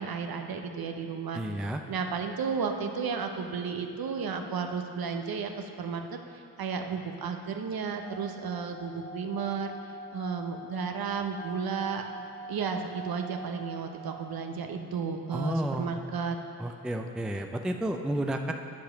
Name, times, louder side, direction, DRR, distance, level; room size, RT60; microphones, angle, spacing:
voice 1, 0.0-1.4 1.9-6.0 6.6-9.7 10.1-12.0 12.5-16.4, right 5 dB, 50° right, 5 dB, 0.9 m, -33 dB
voice 2, 1.3-1.8 15.3-16.0 16.6-18.5, right 1 dB, ahead, 5 dB, 0.5 m, -31 dB
Singing / Glass, 8.0-14.6, right 1 dB, 15° left, 1.2 m, -45 dB
9.4 x 5.0 x 5.8 m, 2.6 s
hypercardioid pair, 45°, 46 cm